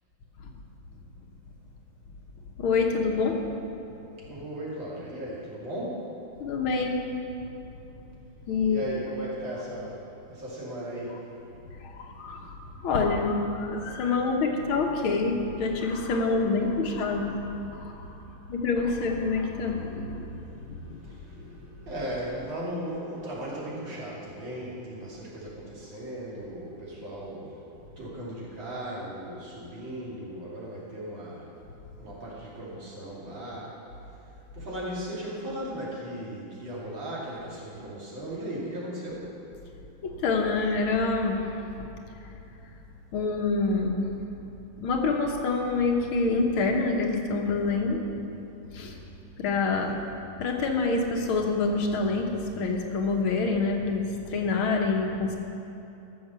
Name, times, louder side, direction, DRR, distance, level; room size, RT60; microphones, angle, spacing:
voice 1, 2.6-3.4 6.4-7.0 8.5-8.8 11.8-12.6 12.8-18.0 18.5-20.3 20.7-21.0 40.0-41.7 43.1-44.1 44.8-48.0 48.7-49.0 49.4-50.0 50.4-55.4, left 3 dB, 75° left, 2 dB, 1.9 m, -26 dB
voice 2, 4.2-6.0 8.7-10.0 10.3-11.2 14.0-14.3 16.0-17.6 18.3-18.6 19.9-27.6 28.0-31.4 32.0-33.7 34.5-39.3, right 1 dB, 60° right, -6 dB, 3.4 m, -37 dB
14.0 x 6.8 x 6.8 m, 2.9 s
omnidirectional pair, 2.4 m